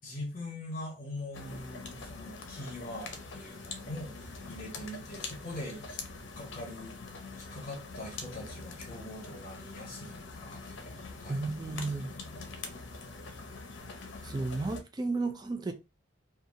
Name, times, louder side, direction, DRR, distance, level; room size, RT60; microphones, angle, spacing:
voice 1, 0.0-6.0 6.4-7.0 7.3-11.8, left 1 dB, 50° left, 1.0 m, -43 dB
sound 1, 1.3-14.8, left 3 dB, 70° left, 0.6 m, -44 dB
voice 2, 11.3-12.1 14.2-15.7, right 3 dB, 20° right, 0.4 m, -33 dB
2.8 x 2.3 x 2.7 m
head